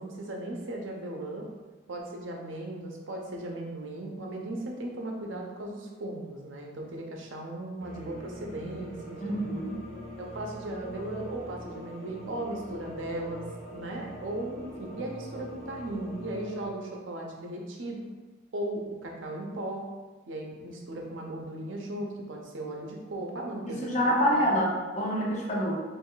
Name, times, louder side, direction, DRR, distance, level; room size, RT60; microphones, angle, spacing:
voice 1, 0.0-1.5 1.9-9.4 10.2-13.5 13.7-18.1 18.5-19.9 20.3-24.0 24.3-24.6, right 1 dB, 90° right, 0 dB, 0.6 m, -37 dB
sound 1, 7.8-16.7, right 1 dB, ahead, 0.9 m, -43 dB
voice 2, 9.2-9.8 23.7-25.8, equal, 40° left, -3 dB, 0.7 m, -27 dB
3.1 x 2.6 x 3.8 m, 1.3 s
head